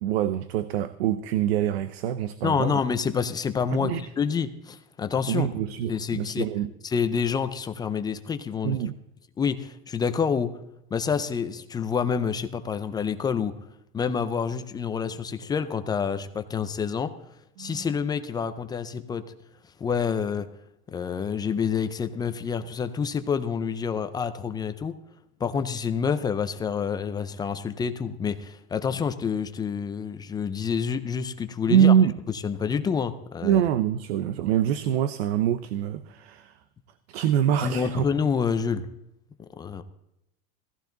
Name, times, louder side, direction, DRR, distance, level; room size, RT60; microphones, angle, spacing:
voice 1, 0.0-2.8 3.7-4.1 5.3-6.7 8.6-8.9 17.6-17.9 31.7-32.1 33.4-36.6 37.1-38.0, right 10 dB, 90° right, 14 dB, 0.9 m, -24 dB
voice 2, 2.4-5.5 5.9-6.5 6.8-8.8 9.4-10.5 10.9-13.6 13.9-17.1 17.6-19.2 19.8-20.5 20.9-25.0 25.4-31.9 32.4-33.6 37.6-38.9 39.6-39.8, left 6 dB, 15° left, 10 dB, 0.5 m, -28 dB
16.5 x 14.5 x 3.9 m, 0.84 s
supercardioid pair, 165°, 31 cm